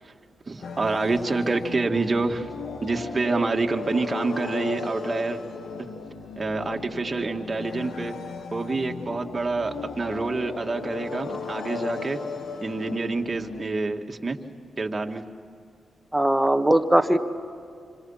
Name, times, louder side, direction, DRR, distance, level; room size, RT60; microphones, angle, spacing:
voice 1, 0.5-2.5 2.8-5.4 5.8-5.9 6.4-8.1 8.5-12.2 12.6-14.4 14.8-15.2, right 3 dB, 35° right, 3 dB, 2.1 m, -27 dB
sound 1, 0.6-13.6, left 5 dB, 75° left, 1.7 m, -36 dB
voice 2, 16.1-17.2, right 1 dB, 10° right, 6 dB, 1.8 m, -19 dB
27.0 x 26.0 x 5.8 m, 2.3 s
cardioid pair, 65°, 0 cm